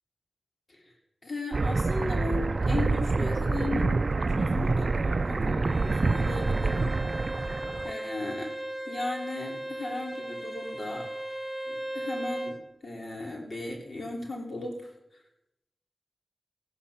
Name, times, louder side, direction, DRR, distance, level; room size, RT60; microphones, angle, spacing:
voice 1, 1.2-4.0 4.3-7.0 7.8-8.5 8.8-11.1 11.7-14.8, left 2 dB, 50° left, 1 dB, 3.1 m, -36 dB
sound 1, 1.5-7.9, right 3 dB, 50° right, 0.5 m, -27 dB
Bowed string instrument, 5.6-12.6, right 1 dB, 15° left, 4.1 m, -37 dB
15.5 x 10.0 x 6.9 m, 0.86 s
wide cardioid pair, 65°, 0 cm